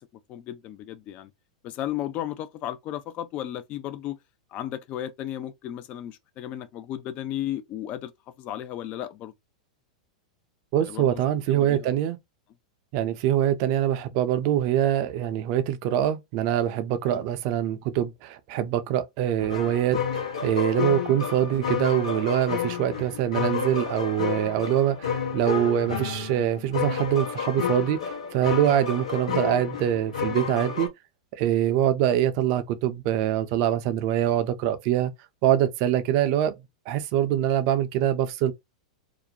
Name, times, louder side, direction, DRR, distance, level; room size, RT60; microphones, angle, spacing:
voice 1, 0.3-1.3 1.6-4.2 4.5-8.1 8.4-9.3 10.8-11.2 11.5-11.9 17.1-17.2, left 12 dB, 40° left, 0.4 m, -34 dB
voice 2, 10.7-12.2 12.9-30.9 31.3-35.1 35.4-36.5 36.9-38.5, right 11 dB, 50° right, 0.5 m, -24 dB
sound 1, 19.4-30.9, left 7 dB, 85° left, 0.9 m, -30 dB
2.5 x 2.1 x 2.7 m
hypercardioid pair, 105°, 4 cm